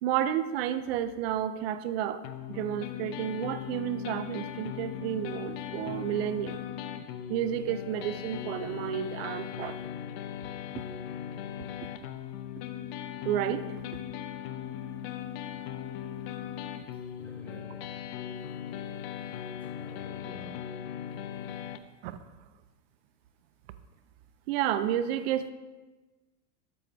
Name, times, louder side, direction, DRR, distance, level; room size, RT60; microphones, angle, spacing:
voice 1, 0.0-2.2 2.5-6.6 7.3-9.8 13.2-13.7 22.0-22.2 24.5-25.5, right 11 dB, 40° right, 13 dB, 0.4 m, -31 dB
sound 1, 2.2-21.8, left 10 dB, 40° left, 0.5 m, -39 dB
voice 2, 17.2-17.9 19.8-20.6, right 1 dB, 5° left, -3 dB, 1.6 m, -50 dB
12.5 x 4.7 x 3.9 m, 1.2 s
supercardioid pair, 140°, 48 cm